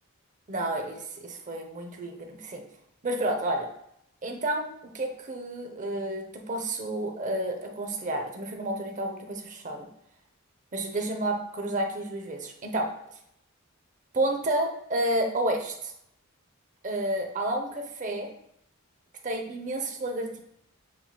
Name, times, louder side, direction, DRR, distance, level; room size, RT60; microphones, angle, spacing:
voice 1, 0.5-2.6 3.0-3.7 4.2-4.6 4.9-9.9 10.7-12.9 14.1-15.9 16.8-18.3 19.2-20.4, right 1 dB, 35° right, 3 dB, 0.7 m, -30 dB
7.5 x 3.0 x 2.2 m, 0.75 s
head